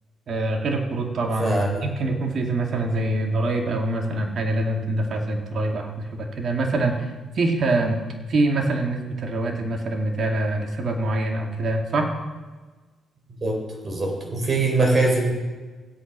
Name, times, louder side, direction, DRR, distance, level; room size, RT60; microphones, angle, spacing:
voice 1, 0.3-7.1 7.4-8.0 8.3-12.1, right 2 dB, 55° right, 2 dB, 2.3 m, -24 dB
voice 2, 1.4-1.8 13.4-13.6 13.8-15.3, right 2 dB, 35° right, 1 dB, 4.4 m, -22 dB
14.0 x 8.6 x 6.2 m, 1.3 s
cardioid pair, 90°, 0 cm